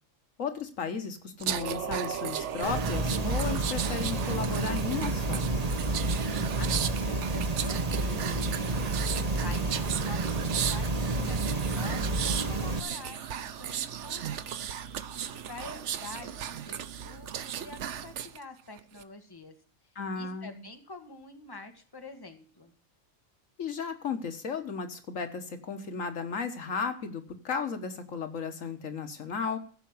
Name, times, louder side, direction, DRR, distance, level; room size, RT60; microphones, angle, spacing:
voice 1, 0.4-5.5 19.9-20.6 23.6-29.6, left 5 dB, 80° left, 7 dB, 1.7 m, -34 dB
sound 1, 1.4-18.4 18.8-19.0, right 9 dB, 65° right, 1.0 m, -36 dB
sound 2, 2.6-12.8, right 2 dB, 30° right, 1.1 m, -30 dB
voice 2, 6.6-19.5 20.1-22.7, left 3 dB, 15° left, 5 dB, 1.7 m, -47 dB
15.0 x 5.7 x 7.8 m, 0.43 s
omnidirectional pair, 1.4 m